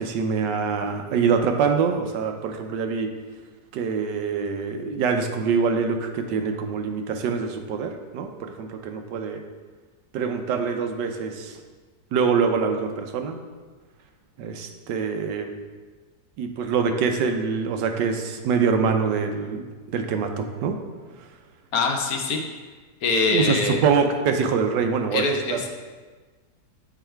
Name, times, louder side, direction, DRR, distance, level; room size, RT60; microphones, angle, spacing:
voice 1, 0.0-3.1 3.7-9.4 10.1-11.5 12.1-13.4 14.4-15.5 16.4-20.7 23.3-25.2 25.5-25.6, right 5 dB, 85° right, 5 dB, 1.3 m, -24 dB
voice 2, 21.7-22.4 23.0-23.8 25.1-25.7, left 3 dB, 65° left, 3 dB, 1.1 m, -23 dB
7.1 x 4.8 x 4.5 m, 1.4 s
omnidirectional pair, 1.8 m